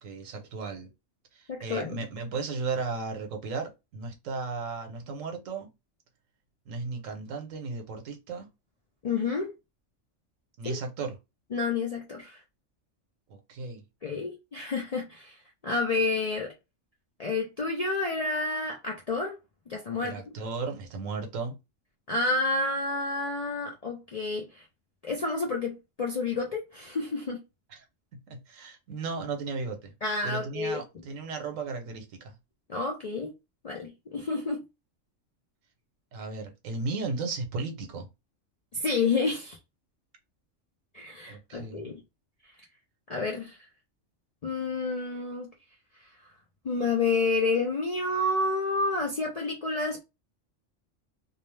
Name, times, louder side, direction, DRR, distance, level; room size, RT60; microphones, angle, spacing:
voice 1, 0.0-0.9 1.3-5.7 6.7-8.5 10.6-11.2 13.3-13.8 20.0-21.5 27.7-27.8 28.3-29.9 30.2-32.3 36.1-38.1 41.3-41.9, right 4 dB, 85° right, 1.1 m, -35 dB
voice 2, 1.5-2.0 9.0-9.5 10.6-10.8 11.5-12.4 14.0-15.4 15.6-16.5 17.2-19.4 19.7-20.2 22.1-24.6 25.0-27.4 30.0-30.8 32.7-33.3 33.6-34.6 38.7-39.6 40.9-42.0 43.1-43.6 44.4-45.5 46.6-50.0, left 3 dB, 55° left, 0.4 m, -29 dB
2.7 x 2.0 x 3.1 m
omnidirectional pair, 1.3 m